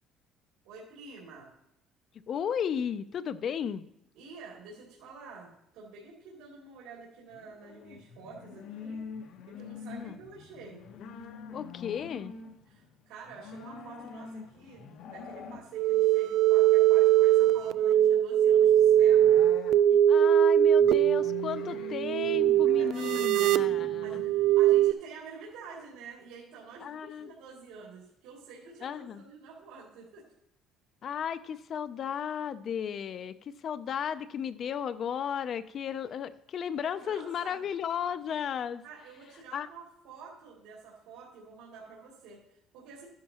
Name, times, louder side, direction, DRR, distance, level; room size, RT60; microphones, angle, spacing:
voice 1, 0.6-1.5 4.1-9.0 9.5-10.8 12.7-19.4 22.7-23.4 23.7-30.3 36.8-37.6 38.8-43.1, right 4 dB, 85° right, -5 dB, 2.7 m, -49 dB
voice 2, 2.3-3.9 9.9-10.2 11.5-12.3 20.1-24.2 26.8-27.3 28.8-29.2 31.0-38.8 39.5-39.7, left 8 dB, 40° left, 13 dB, 0.5 m, -34 dB
sound 1, 7.3-24.6, left 5 dB, 65° left, 1.1 m, -46 dB
sound 2, 15.7-24.9, right 11 dB, 65° right, 0.3 m, -22 dB
13.0 x 10.0 x 2.9 m, 0.80 s
cardioid pair, 140°, 0 cm